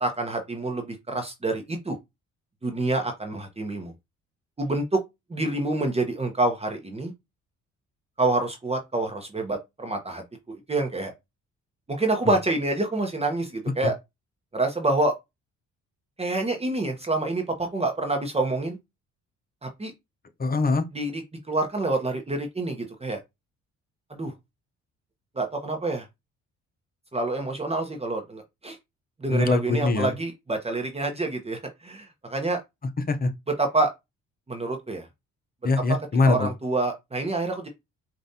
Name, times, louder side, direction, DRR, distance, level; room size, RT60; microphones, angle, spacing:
voice 1, 0.0-2.0 2.6-3.9 4.6-5.0 5.3-7.1 8.2-11.1 11.9-13.9 14.5-15.1 16.2-18.8 19.6-19.9 20.9-21.2 21.5-23.2 24.1-24.3 25.3-26.1 27.1-28.8 29.2-32.6 33.6-33.9 34.5-35.1 36.2-37.7, right 2 dB, 20° right, 1.0 m, -27 dB
voice 2, 20.4-20.8 29.3-30.1 33.1-33.3 35.6-36.5, left 3 dB, 30° left, 0.8 m, -22 dB
5.0 x 2.6 x 2.8 m
cardioid pair, 90°, 30 cm